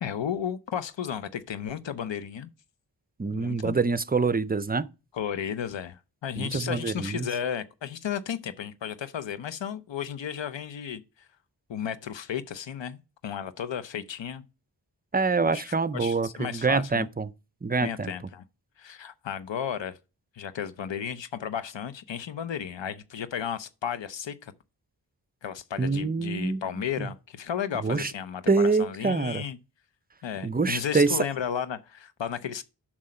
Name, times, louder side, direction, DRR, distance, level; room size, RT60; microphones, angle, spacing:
voice 1, 0.0-2.5 3.3-3.8 5.1-11.3 11.7-14.4 15.5-17.1 17.8-18.4 18.8-20.0 20.3-24.5 25.4-29.6 30.2-32.6, left 8 dB, 90° left, 0.7 m, -34 dB
voice 2, 3.2-4.9 6.4-7.3 15.1-17.3 17.6-18.1 25.8-26.6 27.0-27.1 27.8-28.1 28.5-29.4 30.4-31.2, right 4 dB, 20° right, 0.5 m, -25 dB
7.5 x 6.3 x 4.3 m
wide cardioid pair, 65°, 43 cm